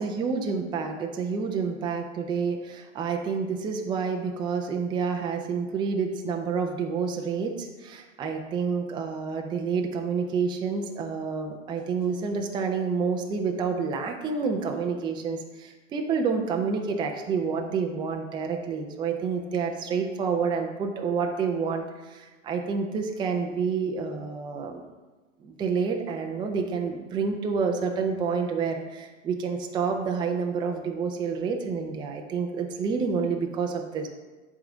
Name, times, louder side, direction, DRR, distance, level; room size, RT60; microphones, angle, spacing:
voice 1, 0.0-24.8 25.4-34.1, right 5 dB, 10° right, 3 dB, 0.5 m, -29 dB
9.5 x 3.8 x 3.7 m, 1.3 s
hypercardioid pair, 115°, 39 cm